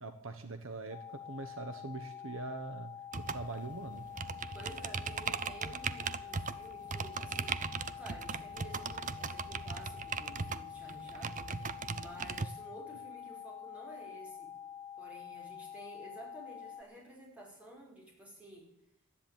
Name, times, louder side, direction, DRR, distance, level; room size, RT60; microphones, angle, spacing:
voice 1, 0.0-2.9 3.2-4.1, right 2 dB, 60° right, 7 dB, 1.2 m, -42 dB
sound 1, 0.9-16.8, left 9 dB, 35° left, 1.0 m, -47 dB
sound 2, 3.1-12.5, right 5 dB, 35° right, 0.6 m, -39 dB
voice 2, 4.5-14.6 15.0-18.7, right 1 dB, 5° right, -3 dB, 5.1 m, -52 dB
13.0 x 10.5 x 9.0 m, 0.80 s
head